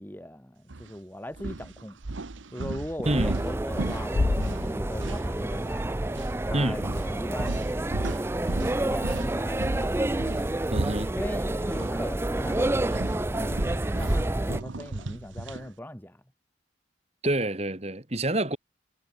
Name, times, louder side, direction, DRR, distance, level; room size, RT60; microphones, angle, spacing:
voice 1, 0.0-2.0 2.5-5.8 6.4-7.6 8.1-9.9 11.1-16.2, equal, 10° left, 1.7 m, -39 dB
sound 1, 0.7-0.9 1.3-5.8 6.1-6.3 6.8-11.9 12.2-15.7, right 2 dB, 85° right, 1.0 m, -36 dB
sound 2, 3.0-14.6, right 1 dB, 15° right, 0.4 m, -29 dB
voice 2, 3.1-3.4 6.5-6.8 10.7-11.1 17.2-18.6, right 1 dB, 35° right, 2.3 m, -27 dB
Bass drum, 4.1-5.8, left 3 dB, 50° left, 0.6 m, -30 dB
head